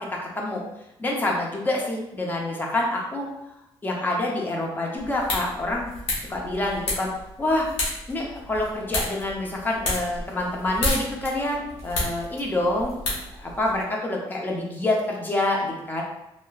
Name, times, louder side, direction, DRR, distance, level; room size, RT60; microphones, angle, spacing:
voice 1, 1.0-3.3 3.8-5.9 6.2-7.1 7.4-7.7 8.1-16.0, left 2 dB, 20° left, -1 dB, 0.6 m, -27 dB
sound 1, 5.0-13.8, left 1 dB, 75° left, 1.2 m, -32 dB
3.2 x 2.8 x 2.3 m, 0.87 s
cardioid pair, 150°, 10 cm